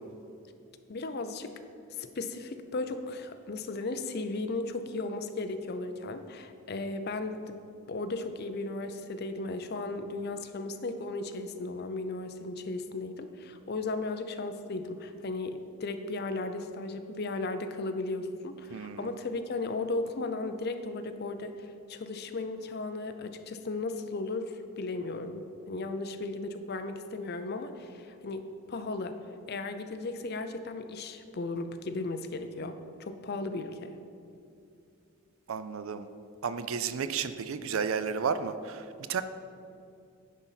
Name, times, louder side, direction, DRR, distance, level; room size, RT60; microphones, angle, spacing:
voice 1, 0.9-1.5 2.0-7.6 7.9-29.2 29.5-34.0, left 3 dB, 45° left, 9 dB, 0.5 m, -36 dB
voice 2, 18.7-19.1 35.5-36.1 36.4-39.2, right 6 dB, 65° right, 11 dB, 0.4 m, -32 dB
10.0 x 4.0 x 5.7 m, 2.5 s
head